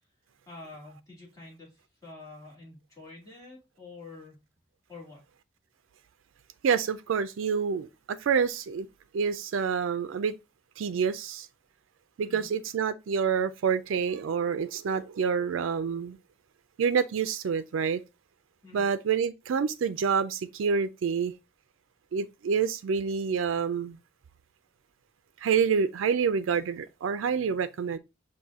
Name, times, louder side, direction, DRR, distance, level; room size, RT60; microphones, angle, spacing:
voice 1, 0.5-4.4 4.9-5.2 12.2-12.5 18.6-18.9, left 3 dB, 15° left, 1.9 m, -47 dB
voice 2, 6.6-8.9 9.1-10.4 10.8-11.5 12.2-16.2 16.8-18.0 18.7-21.3 22.1-24.0 25.4-28.0, right 6 dB, 85° right, 0.4 m, -27 dB
5.5 x 2.7 x 3.4 m
head